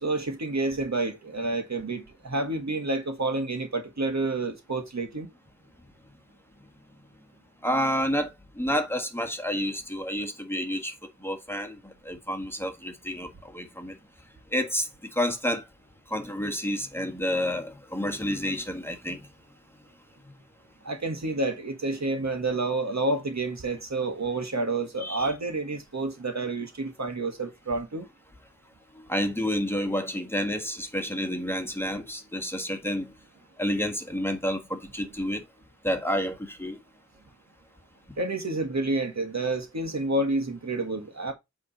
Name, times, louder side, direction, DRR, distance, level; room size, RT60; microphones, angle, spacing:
voice 1, 0.0-5.3 20.8-28.0 38.2-41.3, right 2 dB, 65° right, 1.7 m, -29 dB
voice 2, 7.6-10.9 11.2-13.9 14.5-15.6 16.1-19.2 25.0-25.3 28.9-33.1 33.6-35.4 35.8-36.8, equal, 10° left, 1.5 m, -29 dB
8.5 x 3.8 x 4.2 m
wide cardioid pair, 65°, 29 cm